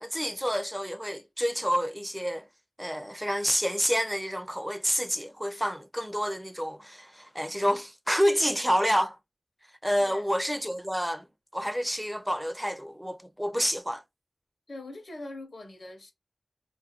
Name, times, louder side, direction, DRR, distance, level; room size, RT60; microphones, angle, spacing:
voice 1, 0.0-2.5 2.8-9.2 9.8-11.3 11.5-14.0, equal, ahead, 0.4 m, -28 dB
voice 2, 14.7-16.1, left 2 dB, 70° left, 0.6 m, -42 dB
2.3 x 2.2 x 2.8 m
wide cardioid pair, 70°, 0 cm